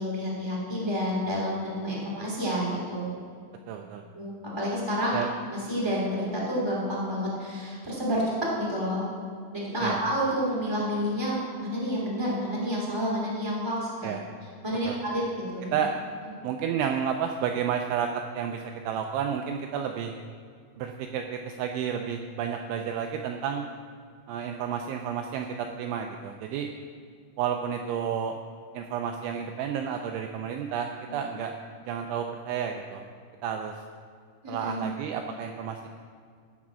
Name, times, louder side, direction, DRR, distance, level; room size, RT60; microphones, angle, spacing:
voice 1, 0.0-3.2 4.1-5.2 5.5-8.2 8.6-9.0 9.5-14.1 14.6-15.8 31.1-31.2 34.4-34.9, equal, 15° right, -6 dB, 0.9 m, -29 dB
voice 2, 3.7-4.0 5.1-5.3 9.8-10.0 14.0-14.2 14.9-15.0 15.7-15.9 16.4-18.1 18.3-20.1 20.8-23.7 24.3-26.7 27.4-28.4 28.7-31.6 31.9-33.0 33.4-33.8 34.5-35.9, right 8 dB, 85° right, 4 dB, 2.7 m, -31 dB
16.0 x 6.0 x 6.2 m, 2.1 s
omnidirectional pair, 6.0 m